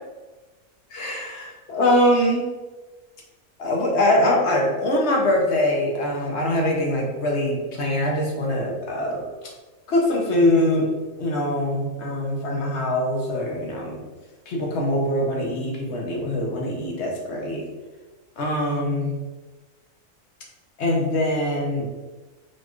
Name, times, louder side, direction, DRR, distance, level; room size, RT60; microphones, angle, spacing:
voice 1, 0.9-2.5 3.6-9.2 9.9-10.9 11.2-14.0 14.5-17.7 18.4-19.2 20.8-21.8, left 1 dB, 60° left, -1 dB, 1.0 m, -23 dB
4.1 x 3.1 x 2.4 m, 1.2 s
omnidirectional pair, 1.4 m